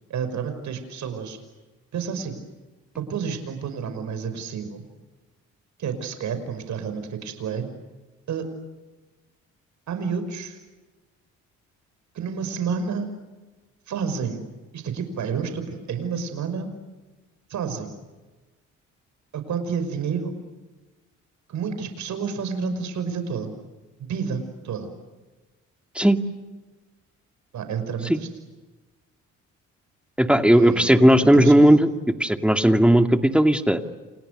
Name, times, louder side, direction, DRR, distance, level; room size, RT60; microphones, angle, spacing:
voice 1, 0.1-1.4 1.9-2.4 3.0-4.8 5.8-7.7 8.3-8.5 9.9-10.6 12.1-13.1 13.9-14.4 14.7-16.7 17.5-18.0 19.3-20.4 21.5-23.5 24.0-24.9 27.5-28.3 30.5-31.7, right 6 dB, 70° right, 9 dB, 5.8 m, -30 dB
voice 2, 30.2-31.9 32.2-33.8, right 1 dB, 5° right, 7 dB, 2.3 m, -16 dB
29.5 x 29.5 x 6.7 m, 1.2 s
cardioid pair, 90°, 30 cm